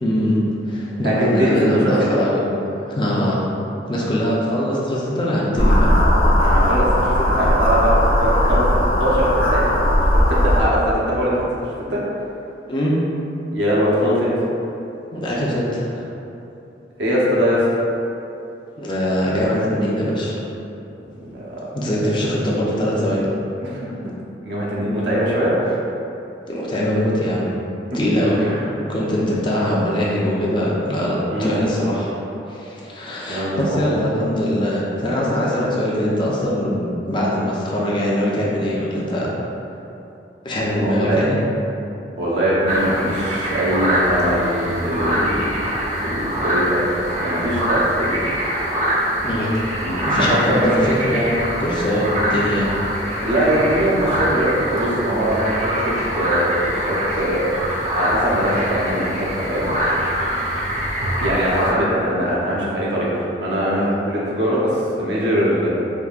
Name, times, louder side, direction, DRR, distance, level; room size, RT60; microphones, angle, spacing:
voice 1, 0.0-2.4 2.9-3.4 3.9-6.0 12.7-13.0 15.1-16.0 18.8-20.3 21.7-23.3 26.4-27.5 27.9-28.5 28.9-32.2 32.5-39.3 40.4-41.4 49.2-49.5 50.0-51.3 51.6-52.7, equal, 30° left, -5 dB, 0.6 m, -22 dB
voice 2, 1.0-2.2 6.4-8.7 9.0-11.5 11.9-12.0 13.5-14.3 17.0-17.8 21.2-21.7 22.2-22.3 23.6-23.8 24.4-25.8 27.9-28.0 28.4-28.7 31.3-31.6 33.3-33.8 40.8-41.2 42.2-45.6 46.0-48.2 49.8-50.7 52.1-52.3 53.2-56.5 56.9-59.7 61.2-65.7, equal, 85° right, -7 dB, 0.8 m, -22 dB
sound 1, 5.6-10.6, left 1 dB, 70° left, 0.7 m, -17 dB
sound 2, 42.7-61.7, equal, 40° right, 0.6 m, -24 dB
4.7 x 2.7 x 2.4 m, 2.9 s
head